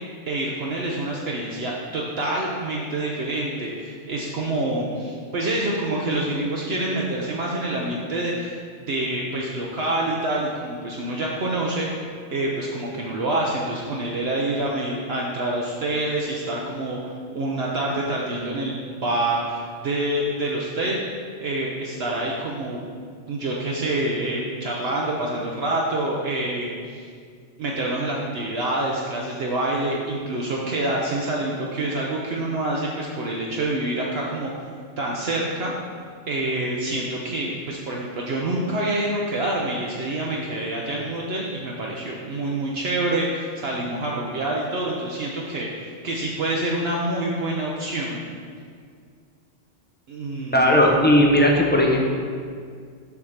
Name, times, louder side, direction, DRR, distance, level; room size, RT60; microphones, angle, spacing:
voice 1, 0.3-8.6 8.9-11.9 12.3-21.0 21.4-22.8 23.3-27.1 27.6-34.5 35.0-35.7 36.3-48.2 50.1-50.8, right 1 dB, 65° right, -3 dB, 0.9 m, -27 dB
voice 2, 50.5-52.0, left 1 dB, 10° left, -1 dB, 0.6 m, -16 dB
7.1 x 3.6 x 6.4 m, 2.1 s
omnidirectional pair, 1.2 m